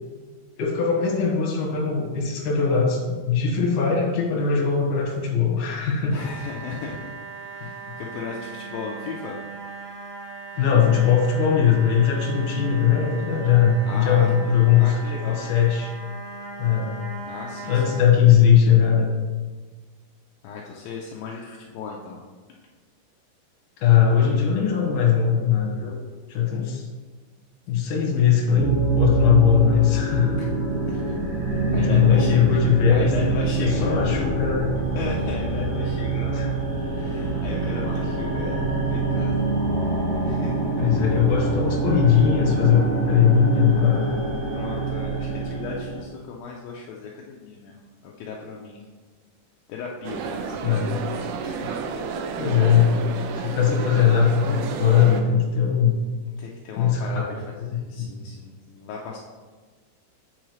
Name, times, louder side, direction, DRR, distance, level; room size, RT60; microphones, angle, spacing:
voice 1, 0.6-6.2 7.6-7.7 10.6-15.0 15.3-15.9 16.6-17.0 17.7-19.1 23.8-26.0 26.3-26.8 27.7-30.4 31.7-33.1 33.6-34.7 36.3-36.5 40.8-44.1 50.6-51.0 52.4-52.9 53.3-55.9 56.8-57.8, left 8 dB, 65° left, -2 dB, 2.1 m, -20 dB
voice 2, 6.1-7.1 7.5-9.4 13.9-14.5 14.8-15.4 17.2-18.0 20.4-22.2 30.4-30.5 30.9-31.1 31.7-32.7 32.9-34.3 35.0-36.6 36.9-38.6 38.9-39.5 40.2-41.0 44.5-48.8 49.7-50.8 51.4-51.8 56.4-59.2, left 5 dB, 80° left, -2 dB, 2.0 m, -36 dB
sound 1, 6.1-18.0, right 4 dB, 35° right, 1.7 m, -38 dB
sound 2, 28.6-46.0, right 3 dB, 60° right, 2.8 m, -25 dB
sound 3, 50.0-55.2, right 5 dB, 80° right, 2.4 m, -31 dB
8.5 x 4.7 x 3.1 m, 1.4 s
omnidirectional pair, 4.7 m